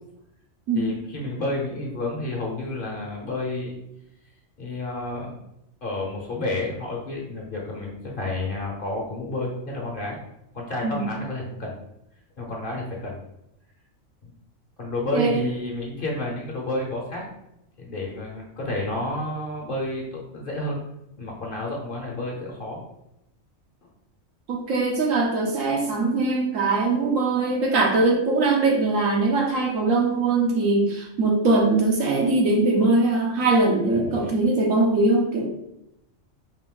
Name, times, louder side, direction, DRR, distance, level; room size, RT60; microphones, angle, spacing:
voice 1, 0.7-3.8 4.6-5.4 5.8-10.2 10.5-11.8 12.4-13.2 14.2-14.3 14.8-17.2 17.8-20.8 21.2-22.8 33.9-34.3, left 2 dB, 45° left, -2 dB, 1.1 m, -30 dB
voice 2, 15.1-15.4 24.5-35.5, right 3 dB, 75° right, 0 dB, 1.3 m, -21 dB
5.1 x 2.6 x 3.8 m, 0.82 s
omnidirectional pair, 1.4 m